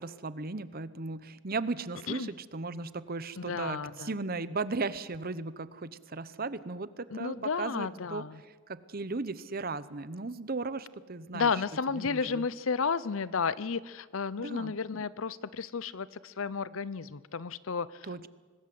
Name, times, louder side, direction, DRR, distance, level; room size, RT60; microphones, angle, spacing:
voice 1, 0.0-8.2 8.7-11.5 11.9-12.4 14.4-14.7 18.1-18.3, right 3 dB, 45° right, 15 dB, 0.9 m, -36 dB
voice 2, 3.4-4.2 7.1-8.4 11.3-18.3, left 5 dB, 70° left, 18 dB, 0.6 m, -33 dB
25.0 x 20.0 x 7.8 m, 1.5 s
head